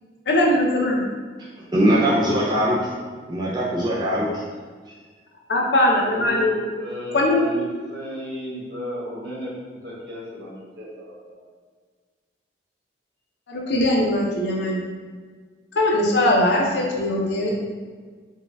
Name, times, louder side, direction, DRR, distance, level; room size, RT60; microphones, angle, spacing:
voice 1, 0.3-1.0 5.5-6.6 7.1-7.5 13.5-14.8 15.7-17.5, left 1 dB, 70° left, -2 dB, 0.7 m, -20 dB
voice 2, 1.7-3.0 3.3-4.4, equal, 25° right, -6 dB, 0.4 m, -21 dB
voice 3, 6.1-9.5 9.8-11.4, equal, 70° right, -7 dB, 1.4 m, -34 dB
4.5 x 2.3 x 3.4 m, 1.5 s
head